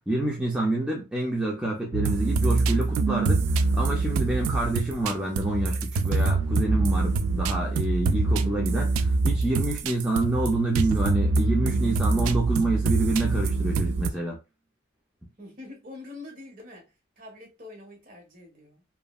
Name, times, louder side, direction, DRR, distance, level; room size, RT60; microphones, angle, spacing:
voice 1, 0.1-3.4 3.7-14.4, right 2 dB, 5° right, 0.5 m, -27 dB
sound 1, 1.9-14.1, right 3 dB, 90° right, 0.3 m, -25 dB
voice 2, 15.4-18.8, left 2 dB, 45° right, 1.2 m, -45 dB
3.0 x 2.5 x 2.3 m
head